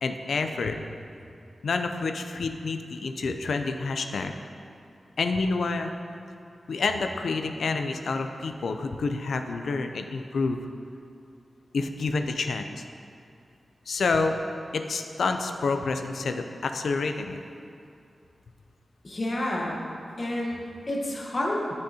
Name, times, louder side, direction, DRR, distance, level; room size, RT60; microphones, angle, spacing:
voice 1, 0.0-0.8 1.6-4.3 5.2-5.9 6.7-10.6 11.7-12.8 13.9-14.4 14.7-17.4, left 4 dB, 75° left, 6 dB, 0.4 m, -28 dB
voice 2, 19.0-19.8 20.2-21.7, left 1 dB, 30° left, -2 dB, 1.1 m, -29 dB
10.5 x 6.4 x 2.8 m, 2.6 s
wide cardioid pair, 165°, 0 cm